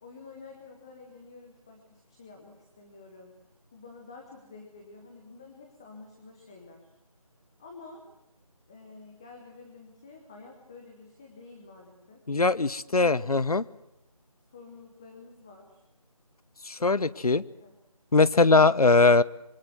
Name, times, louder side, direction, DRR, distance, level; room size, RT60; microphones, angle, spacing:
voice 1, 0.0-3.4 3.7-6.9 7.6-8.0 8.7-12.2 12.9-13.3 14.5-15.8 16.8-17.4 17.6-17.7, left 3 dB, 10° left, 1 dB, 0.9 m, -49 dB
voice 2, 12.3-13.6 16.6-17.4 18.1-19.2, left 3 dB, 75° left, 18 dB, 0.9 m, -21 dB
25.0 x 23.0 x 7.9 m, 0.86 s
figure-of-eight pair, 170°, 19 cm